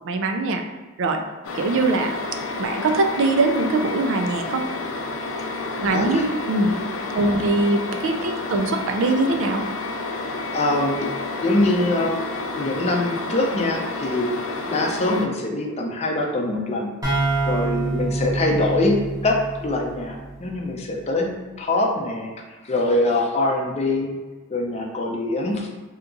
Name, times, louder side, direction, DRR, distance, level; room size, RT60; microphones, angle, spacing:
voice 1, 0.0-0.6 1.0-1.2 1.5-2.1 2.6-4.7 5.7-6.2 6.5-6.7 7.1-9.6, right 2 dB, 65° right, 4 dB, 0.4 m, -22 dB
sound 1, 1.4-15.3, left 3 dB, 85° left, 0.4 m, -30 dB
voice 2, 5.3-6.2 8.2-8.3 10.1-11.1 11.4-12.1 12.6-14.3 14.7-16.9 17.5-19.0 19.2-22.3 22.6-24.2 24.5-25.7, left 2 dB, 30° left, 0 dB, 0.5 m, -24 dB
sound 2, 17.0-20.7, right 2 dB, 15° right, 0.9 m, -26 dB
2.8 x 2.3 x 3.7 m, 1.3 s
head